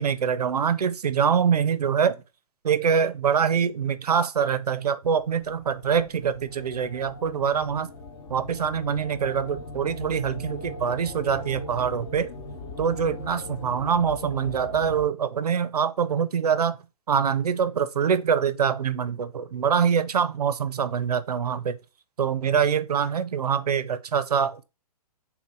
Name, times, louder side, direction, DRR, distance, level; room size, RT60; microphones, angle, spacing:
voice 1, 0.0-2.2 2.6-7.9 8.3-12.3 12.8-16.8 17.1-21.8 22.2-24.6, right 7 dB, 80° right, 0.5 m, -24 dB
sound 1, 5.2-15.1, left 2 dB, 60° left, 0.9 m, -40 dB
3.5 x 3.1 x 3.3 m
figure-of-eight pair, 120°, 20 cm